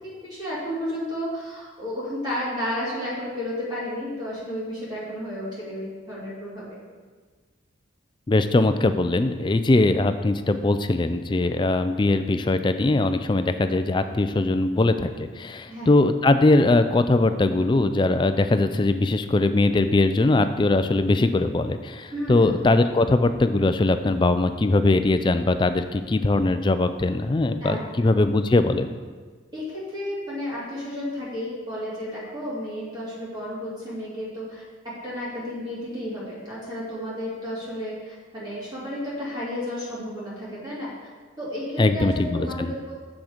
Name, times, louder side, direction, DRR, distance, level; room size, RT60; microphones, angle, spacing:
voice 1, 0.0-6.8 15.7-15.9 22.1-22.5 27.6-27.8 29.5-40.9 41.4-43.0, left 1 dB, 20° right, -9 dB, 2.6 m, -32 dB
voice 2, 8.3-28.9 41.8-42.7, left 2 dB, 25° left, 10 dB, 0.3 m, -21 dB
7.2 x 6.2 x 5.0 m, 1.5 s
head